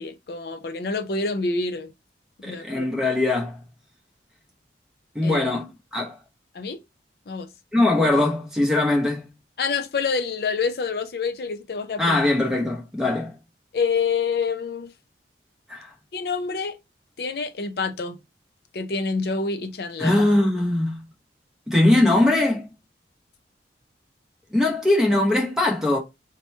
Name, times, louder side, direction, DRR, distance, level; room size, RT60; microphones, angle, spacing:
voice 1, 0.0-1.9 2.4-2.9 5.2-5.5 6.5-6.8 7.3-7.5 9.6-12.2 13.7-14.9 16.1-16.8 17.2-18.2 18.7-20.2, left 4 dB, 60° left, 0.4 m, -27 dB
voice 2, 2.4-3.6 5.1-5.7 5.9-6.2 7.7-9.3 12.0-13.3 15.7-15.9 20.0-21.0 21.7-22.7 24.5-26.0, left 2 dB, 5° right, 0.9 m, -21 dB
3.0 x 2.2 x 4.1 m
head